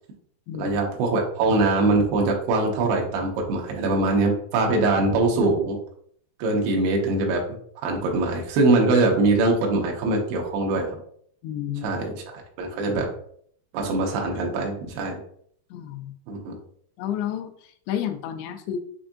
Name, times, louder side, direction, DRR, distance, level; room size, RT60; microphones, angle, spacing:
voice 1, 0.6-5.8 6.4-7.4 7.8-11.0 11.8-13.1 13.7-15.2 16.3-16.5, right 2 dB, 85° right, 0 dB, 2.7 m, -22 dB
voice 2, 11.4-11.9 15.7-16.1 17.0-18.8, left 10 dB, 85° left, 6 dB, 2.6 m, -31 dB
6.9 x 2.6 x 2.5 m, 0.62 s
omnidirectional pair, 4.8 m